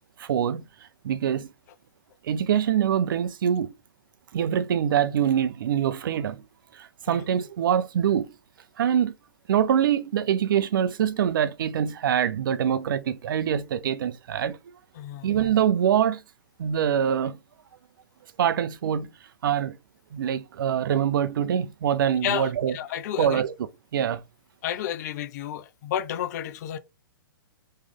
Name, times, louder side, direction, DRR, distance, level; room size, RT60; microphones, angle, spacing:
voice 1, 0.2-0.6 1.0-1.5 2.3-3.7 4.3-6.4 6.7-8.3 8.8-9.1 9.5-14.6 15.2-16.2 16.6-17.4 18.4-19.1 19.4-19.8 20.1-22.8 23.2-24.2, right 9 dB, 65° right, 0.6 m, -24 dB
voice 2, 22.7-23.4 24.6-26.8, left 11 dB, 50° left, 0.6 m, -31 dB
3.2 x 3.1 x 3.6 m
hypercardioid pair, 125°, 12 cm